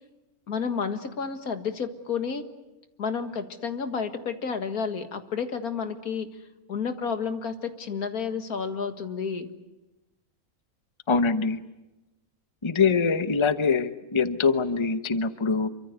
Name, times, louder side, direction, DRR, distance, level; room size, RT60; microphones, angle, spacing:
voice 1, 0.5-2.4 3.0-6.3 6.7-9.5, left 6 dB, 80° left, 8 dB, 2.2 m, -31 dB
voice 2, 11.1-11.6 12.6-15.7, left 5 dB, 20° left, 11 dB, 0.9 m, -23 dB
27.5 x 24.5 x 8.2 m, 0.98 s
omnidirectional pair, 1.5 m